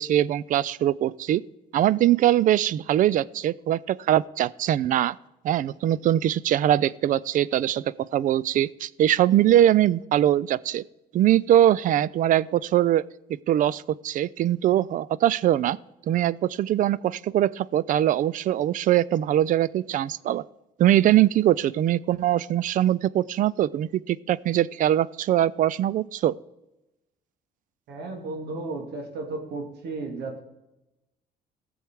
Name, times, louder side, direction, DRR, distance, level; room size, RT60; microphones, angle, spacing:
voice 1, 0.0-1.4 1.7-5.2 5.4-10.8 11.1-13.1 13.5-15.8 16.1-20.4 20.8-26.3, right 12 dB, 50° right, 22 dB, 0.4 m, -22 dB
voice 2, 27.9-30.4, right 3 dB, 75° right, 3 dB, 2.5 m, -34 dB
17.5 x 7.1 x 4.7 m, 0.94 s
cardioid pair, 110°, 17 cm